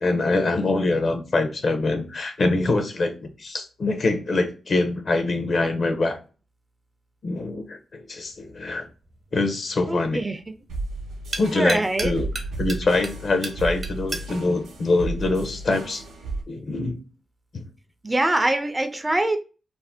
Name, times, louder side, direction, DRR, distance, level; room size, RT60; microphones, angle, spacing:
voice 1, 0.0-6.2 7.2-8.9 9.3-10.2 11.4-12.3 12.6-16.0 16.5-17.0 17.5-17.6, left 2 dB, 60° left, 0.6 m, -24 dB
sound 1, 8.2-15.9, right 2 dB, 45° right, 0.8 m, -39 dB
voice 2, 9.9-10.4 11.5-12.1 18.0-19.4, right 1 dB, 25° right, 0.5 m, -23 dB
sound 2, 10.7-16.4, right 2 dB, 90° right, 0.7 m, -33 dB
2.6 x 2.1 x 3.4 m
supercardioid pair, 45°, 0 cm